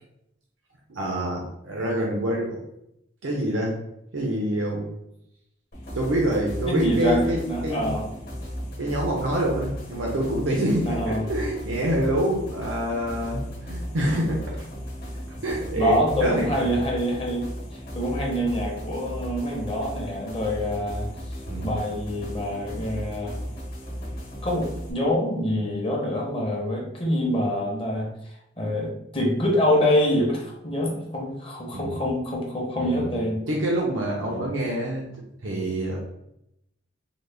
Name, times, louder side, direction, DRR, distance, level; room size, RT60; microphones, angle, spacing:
voice 1, 0.9-2.6 3.2-3.8 4.1-4.9 5.9-7.9 8.8-14.7 15.4-16.7 21.5-21.7 31.7-32.0 32.8-33.2 33.5-35.0 35.4-36.0, right 1 dB, 85° right, -2 dB, 0.7 m, -26 dB
sound 1, 5.7-24.9, equal, 50° left, 1.0 m, -35 dB
voice 2, 6.7-8.0 10.9-11.2 15.8-17.5 17.9-21.1 21.6-23.3 24.4-28.1 28.6-33.4 34.2-34.5, equal, 30° left, -1 dB, 0.7 m, -25 dB
3.9 x 2.1 x 3.3 m, 0.80 s
head